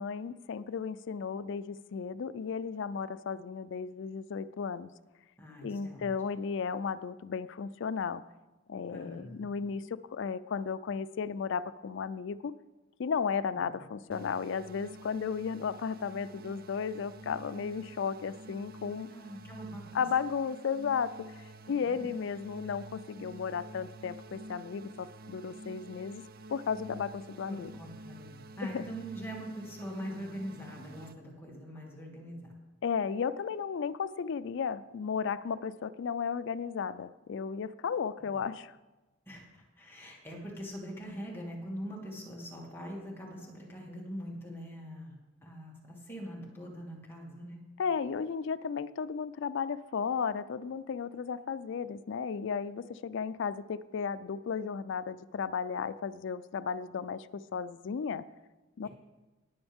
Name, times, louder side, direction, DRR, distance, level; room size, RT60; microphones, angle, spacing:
voice 1, 0.0-4.9 5.6-8.2 8.7-12.5 13.0-19.1 19.9-21.3 21.7-26.2 26.5-27.7 28.6-28.8 32.8-38.7 47.8-58.3 58.8-58.9, left 6 dB, 65° left, 14 dB, 0.4 m, -34 dB
voice 2, 5.4-6.1 8.9-9.5 13.7-13.8 19.1-20.0 21.7-22.1 27.5-32.5 38.2-38.4 39.3-39.4 39.8-45.1 45.4-47.6, equal, 10° left, -3 dB, 2.4 m, -43 dB
sound 1, 14.1-31.1, right 1 dB, 50° right, 0.5 m, -49 dB
19.0 x 7.0 x 3.6 m, 1.1 s
head